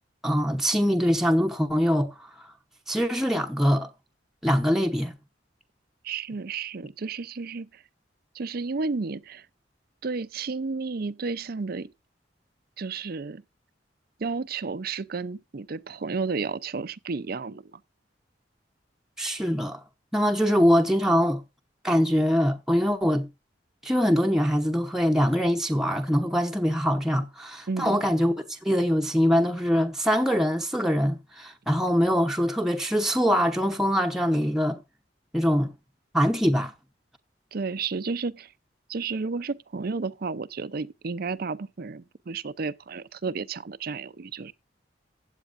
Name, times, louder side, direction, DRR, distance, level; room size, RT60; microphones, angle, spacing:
voice 1, 0.2-2.5 2.9-3.9 4.4-5.1 19.2-19.8 20.1-21.4 21.8-23.3 23.8-34.8 35.3-35.7 36.1-36.7, equal, ahead, 0.9 m, -23 dB
voice 2, 6.0-7.8 8.3-9.5 10.0-11.9 12.8-13.4 14.2-17.8 27.7-28.0 37.5-38.5 38.9-44.5, right 4 dB, 55° right, 0.6 m, -32 dB
15.5 x 8.9 x 2.5 m
head